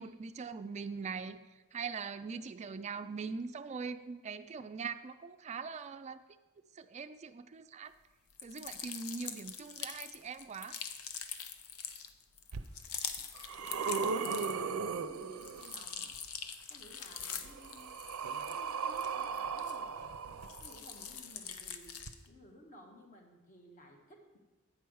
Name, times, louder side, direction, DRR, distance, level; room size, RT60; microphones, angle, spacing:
voice 1, 0.0-1.4 1.7-6.2 6.8-7.9 8.4-10.8, right 5 dB, 30° right, 10 dB, 0.4 m, -42 dB
sound 1, 8.3-14.8 15.1-20.0 20.4-22.3, left 7 dB, 80° left, 0.6 m, -44 dB
sound 2, 12.5-12.6 13.2-15.9 17.1-21.0 22.0-22.1, right 5 dB, 85° right, 0.5 m, -37 dB
voice 2, 13.6-16.1 16.7-17.9 18.4-20.1 20.6-21.9 22.3-24.4, equal, 40° left, 1 dB, 1.3 m, -55 dB
8.8 x 4.6 x 6.2 m, 1.2 s
head